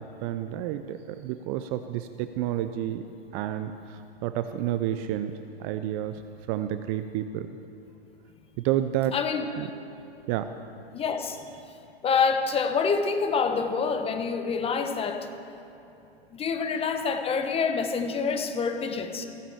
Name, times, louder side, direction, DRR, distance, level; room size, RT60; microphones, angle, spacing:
voice 1, 0.0-3.0 3.3-5.3 5.6-6.2 6.5-7.5 8.6-9.1 9.6-9.7 10.3-10.5, right 12 dB, 35° right, 10 dB, 0.5 m, -30 dB
voice 2, 9.1-9.7 10.9-11.4 12.0-15.3 16.3-19.3, left 5 dB, 20° left, 7 dB, 1.1 m, -27 dB
16.0 x 8.8 x 7.2 m, 2.9 s
hypercardioid pair, 115°, 31 cm